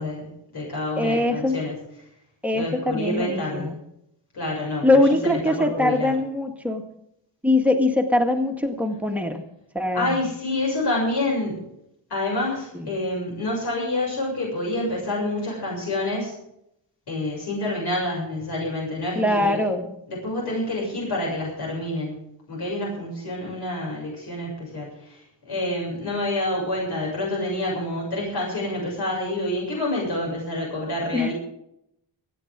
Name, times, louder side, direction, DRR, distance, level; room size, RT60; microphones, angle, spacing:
voice 1, 0.0-1.7 2.5-3.7 4.3-4.9 5.2-6.1 9.9-11.6 12.1-16.3 17.1-19.6 20.1-31.3, left 1 dB, 60° left, -3 dB, 7.3 m, -28 dB
voice 2, 1.0-1.6 2.4-3.8 4.8-6.8 7.4-9.4 9.7-10.2 12.7-12.9 19.2-20.0 31.1-31.3, left 2 dB, 5° right, 2 dB, 1.9 m, -22 dB
29.5 x 10.0 x 3.8 m, 0.78 s
wide cardioid pair, 175°, 45 cm